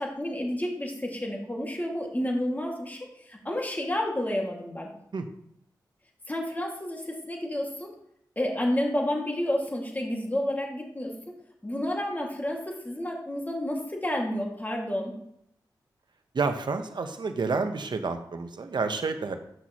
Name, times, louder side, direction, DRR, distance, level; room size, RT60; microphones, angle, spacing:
voice 1, 0.0-4.9 6.3-7.9 8.4-11.3 11.6-15.2, left 1 dB, 20° left, 0 dB, 2.1 m, -30 dB
voice 2, 16.3-19.4, right 4 dB, 65° right, 7 dB, 0.9 m, -29 dB
9.0 x 6.1 x 3.0 m, 0.74 s
cardioid pair, 45°, 8 cm